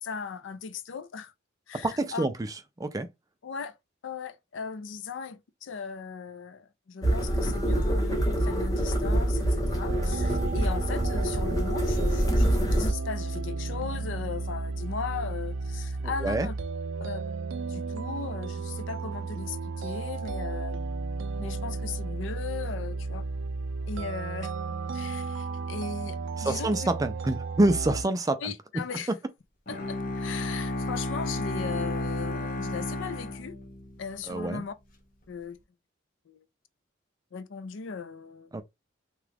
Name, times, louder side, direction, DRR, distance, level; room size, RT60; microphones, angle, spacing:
voice 1, 0.0-1.3 1.7-2.3 3.4-3.8 4.0-16.5 17.0-17.2 17.7-20.8 21.4-23.2 23.9-24.5 24.9-26.8 28.4-29.1 29.7-33.6 34.0-34.7 35.3-35.6 36.3-36.4 37.3-38.5, left 6 dB, 75° left, 0.5 m, -38 dB
voice 2, 1.8-3.1 16.0-16.5 26.4-29.0 34.3-34.6 38.5-38.6, right 2 dB, 20° right, 0.4 m, -27 dB
sound 1, 7.0-12.9, right 1 dB, 20° left, 0.9 m, -25 dB
sound 2, 9.9-28.0, right 4 dB, 85° right, 0.4 m, -34 dB
Bowed string instrument, 29.7-34.1, left 1 dB, 45° left, 0.8 m, -32 dB
2.9 x 2.4 x 3.3 m
head